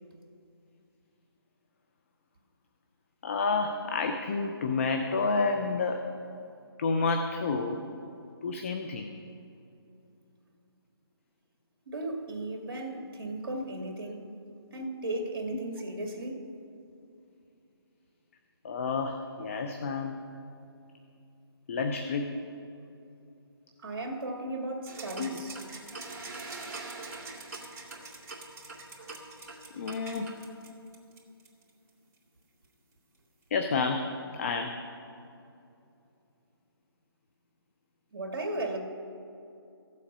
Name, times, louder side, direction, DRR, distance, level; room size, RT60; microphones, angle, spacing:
voice 1, 3.2-6.0 6.8-7.8 8.4-9.1 13.5-13.6 18.6-20.2 21.7-22.3 25.2-25.3 29.7-30.4 33.5-34.8, left 4 dB, 30° left, 5 dB, 0.6 m, -30 dB
voice 2, 11.9-14.3 14.7-16.5 23.8-25.6 38.1-38.8, right 2 dB, 55° right, 2 dB, 2.3 m, -35 dB
sound 1, 24.9-31.7, right 3 dB, 35° right, 2.2 m, -43 dB
15.5 x 7.4 x 5.5 m, 2.7 s
hypercardioid pair, 160°, 13 cm